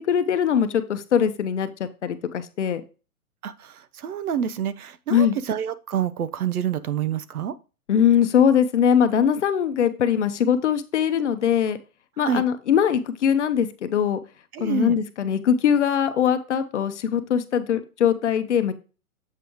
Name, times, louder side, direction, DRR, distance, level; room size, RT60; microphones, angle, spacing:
voice 1, 0.1-2.8 5.1-5.4 7.9-11.8 12.2-14.2 14.6-18.7, left 8 dB, 50° left, 0.8 m, -21 dB
voice 2, 3.4-7.5 12.2-12.4 14.5-15.0, right 9 dB, 75° right, 0.8 m, -27 dB
7.6 x 5.0 x 3.0 m
hypercardioid pair, 165°, 44 cm